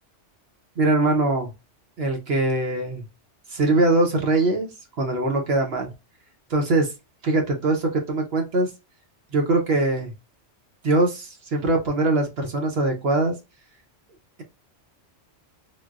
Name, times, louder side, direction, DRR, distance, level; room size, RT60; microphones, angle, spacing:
voice 1, 0.8-1.5 2.0-3.0 3.5-4.7 5.0-5.9 6.5-6.9 7.2-8.7 9.3-10.1 10.8-13.3, right 2 dB, 60° right, 2 dB, 0.9 m, -22 dB
3.8 x 2.1 x 2.4 m, 0.26 s
omnidirectional pair, 1.2 m